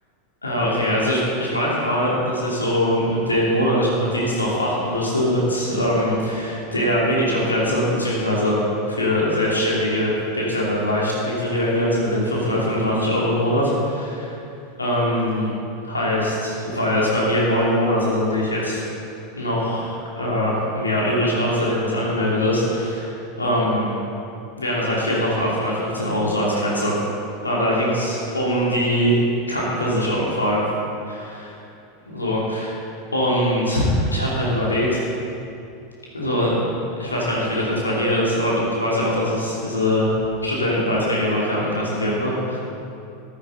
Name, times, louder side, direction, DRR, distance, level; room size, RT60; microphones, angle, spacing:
voice 1, 0.4-8.6 8.9-14.2 14.8-15.5 15.8-18.8 19.4-23.9 24.6-27.0 27.4-29.1 29.5-30.6 31.1-31.4 32.1-32.8 33.1-35.0 36.1-36.6 37.0-40.1 40.4-42.6, equal, 85° left, -6 dB, 2.9 m, -22 dB
14.0 x 14.0 x 4.1 m, 2.6 s
figure-of-eight pair, 85°, 0 cm